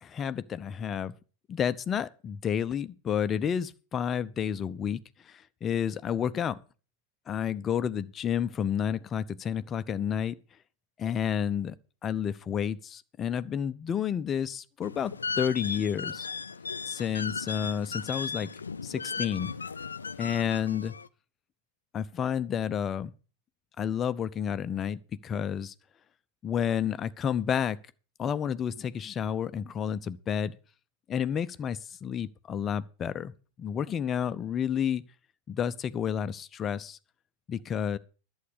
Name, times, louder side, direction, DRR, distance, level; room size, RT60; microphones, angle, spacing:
voice 1, 0.0-1.1 1.5-6.6 7.3-10.3 11.0-11.7 12.0-16.3 16.9-18.5 18.8-19.5 20.2-20.9 21.9-23.1 23.8-25.7 26.4-27.8 28.2-30.5 31.1-33.3 33.6-35.0 35.5-37.0 37.5-38.0, left 8 dB, 25° left, 0.7 m, -30 dB
sound 1, 14.8-21.1, left 5 dB, 75° left, 0.5 m, -36 dB
11.5 x 8.1 x 6.8 m
figure-of-eight pair, 90°, 0 cm